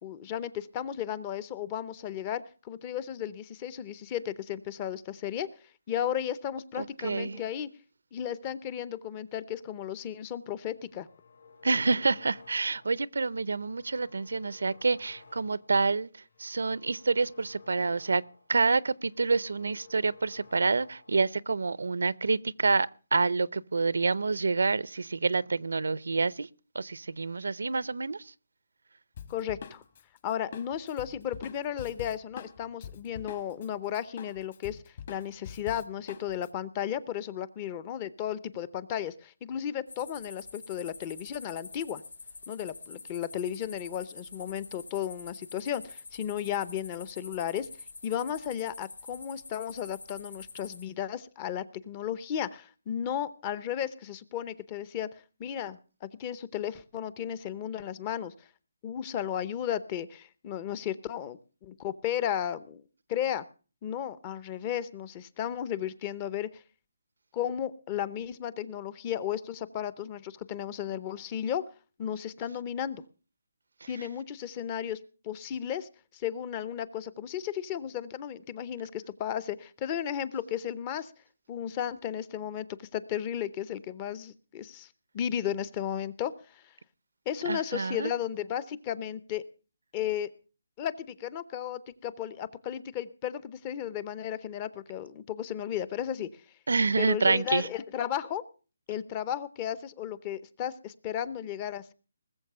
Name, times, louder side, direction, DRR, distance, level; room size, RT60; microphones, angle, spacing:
voice 1, 0.0-5.5 5.9-7.7 8.1-11.1 29.3-29.8 30.2-42.0 42.5-47.7 48.0-55.1 55.4-58.3 58.8-62.8 63.1-63.4 63.8-66.6 67.3-71.6 72.0-73.0 73.9-75.0 75.2-81.1 81.5-84.9 85.1-86.6 87.3-89.4 89.9-90.3 90.8-96.4 97.0-98.4 98.9-101.9, left 10 dB, 20° left, 0.6 m, -34 dB
voice 2, 6.8-7.4 11.6-18.2 18.5-26.5 26.7-28.3 73.8-74.1 87.4-88.1 96.7-97.7, right 4 dB, 80° right, 0.6 m, -28 dB
sound 1, 10.8-13.1 13.5-15.8 16.2-18.6 18.9-21.3, left 4 dB, 60° left, 2.3 m, -55 dB
Drum kit, 29.2-33.7 33.9-36.5, left 7 dB, 40° left, 1.6 m, -44 dB
sound 2, 39.9-50.8, left 4 dB, 85° left, 4.7 m, -46 dB
20.0 x 7.3 x 6.7 m
hypercardioid pair, 170°, 0 cm